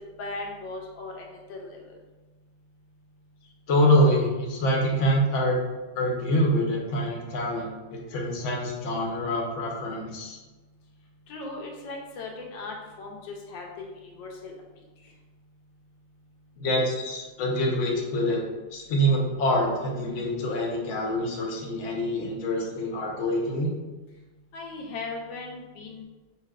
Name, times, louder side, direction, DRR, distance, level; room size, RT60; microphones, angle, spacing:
voice 1, 0.2-1.9 11.3-14.5 24.5-26.0, left 3 dB, 80° left, 0 dB, 1.3 m, -38 dB
voice 2, 3.7-5.6 5.9-10.4 16.6-18.4 18.7-23.7, equal, 55° left, -1 dB, 0.9 m, -25 dB
5.5 x 2.6 x 2.4 m, 1.2 s
omnidirectional pair, 2.0 m